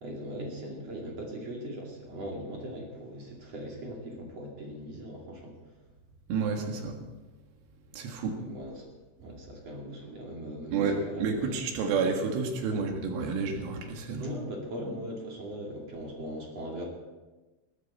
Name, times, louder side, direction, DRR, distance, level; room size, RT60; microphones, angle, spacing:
voice 1, 0.0-5.5 8.4-8.9 9.2-11.6 12.6-12.8 14.2-16.9, equal, 40° right, -1 dB, 2.9 m, -39 dB
voice 2, 6.3-7.0 7.9-8.4 9.2-9.3 10.7-14.3, right 5 dB, 80° right, 3 dB, 4.3 m, -30 dB
21.0 x 14.5 x 4.3 m, 1.2 s
omnidirectional pair, 5.6 m